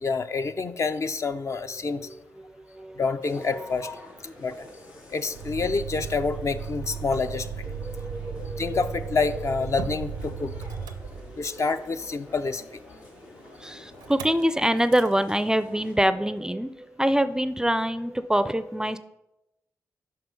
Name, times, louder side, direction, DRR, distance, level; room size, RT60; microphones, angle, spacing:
voice 1, 0.0-2.1 3.0-4.0 4.4-4.7 5.1-7.6 8.4-10.5 11.4-12.6, left 4 dB, 45° left, 9 dB, 0.5 m, -28 dB
voice 2, 2.7-3.0 3.5-3.7 7.7-9.2 10.4-10.5 13.6-19.0, equal, 10° right, 13 dB, 0.4 m, -25 dB
sound 1, 3.2-15.9, left 2 dB, 85° left, 1.6 m, -49 dB
Motor vehicle (road), 5.3-11.7 14.0-14.4 14.8-15.1, right 6 dB, 85° right, 0.5 m, -36 dB
5.8 x 5.4 x 5.1 m, 0.91 s
supercardioid pair, 45°, 7 cm